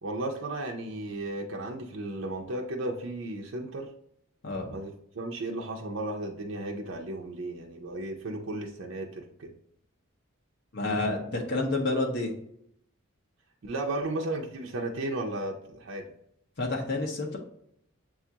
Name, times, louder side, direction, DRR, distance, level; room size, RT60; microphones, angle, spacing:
voice 1, 0.0-3.9 4.7-9.5 13.6-16.1, right 2 dB, 65° right, 0 dB, 0.5 m, -34 dB
voice 2, 4.4-4.7 10.7-12.3 16.6-17.4, left 2 dB, 55° left, 0 dB, 0.7 m, -29 dB
6.9 x 2.4 x 2.8 m, 0.72 s
head